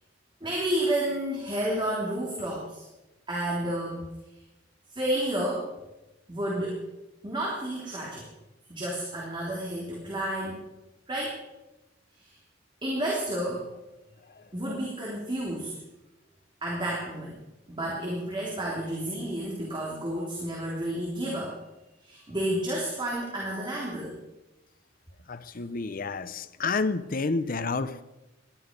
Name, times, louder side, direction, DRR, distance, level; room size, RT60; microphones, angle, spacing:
voice 1, 0.4-2.9 3.3-4.1 4.9-5.7 6.3-6.8 7.2-8.3 8.7-10.6 11.1-11.4 12.2-12.3 12.8-13.6 14.5-15.7 16.6-17.4 17.7-21.6 22.0-24.2, right 1 dB, 25° right, -3 dB, 3.1 m, -31 dB
voice 2, 25.3-28.0, left 3 dB, 50° left, 14 dB, 0.7 m, -30 dB
19.0 x 12.5 x 5.2 m, 0.99 s
head